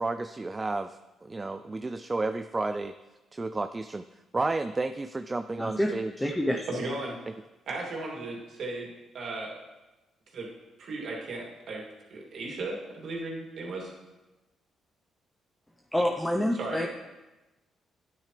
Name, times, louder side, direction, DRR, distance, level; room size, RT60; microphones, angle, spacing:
voice 1, 0.0-2.9 3.3-4.0 4.3-6.1, right 3 dB, 25° right, 10 dB, 0.4 m, -31 dB
voice 2, 5.6-6.7 15.9-16.9, equal, 5° left, 2 dB, 0.7 m, -27 dB
voice 3, 6.7-7.2 7.7-9.6 10.3-10.5 10.8-11.8 12.1-13.9 16.5-16.9, right 2 dB, 65° right, -2 dB, 2.7 m, -36 dB
12.5 x 9.5 x 3.4 m, 1.1 s
cardioid pair, 90°, 0 cm